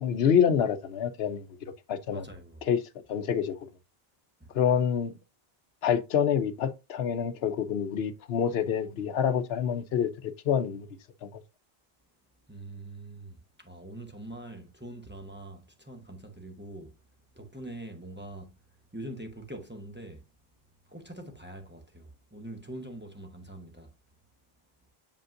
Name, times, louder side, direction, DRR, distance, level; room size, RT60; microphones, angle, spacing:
voice 1, 0.0-1.4 1.9-2.2 2.6-2.8 3.1-3.6 4.5-5.1 5.8-10.1 10.5-10.9 11.3-11.4, left 8 dB, 80° left, 0.9 m, -26 dB
voice 2, 2.1-2.7 4.4-4.5 12.5-16.9 17.3-18.6 18.9-20.2 20.9-23.9, right 1 dB, 10° right, 0.9 m, -43 dB
7.1 x 5.2 x 2.5 m
omnidirectional pair, 1.0 m